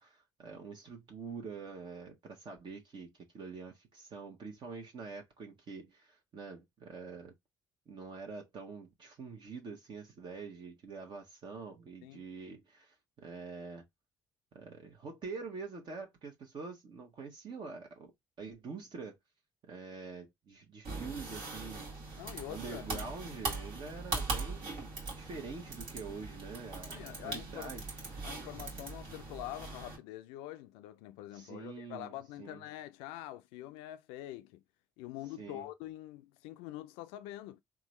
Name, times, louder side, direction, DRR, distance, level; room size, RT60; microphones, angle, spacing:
voice 1, 0.0-7.3 7.9-13.8 14.5-18.1 18.4-19.2 19.7-21.9 22.5-27.8 28.2-28.3 31.3-32.6 35.4-35.7, right 4 dB, 50° right, 1.0 m, -46 dB
sound 1, 20.8-30.0, right 3 dB, 70° right, 1.5 m, -41 dB
voice 2, 22.2-23.1 26.9-27.8 28.2-34.6 35.0-37.6, left 14 dB, 75° left, 0.4 m, -45 dB
3.7 x 2.4 x 3.1 m
hypercardioid pair, 50°, 10 cm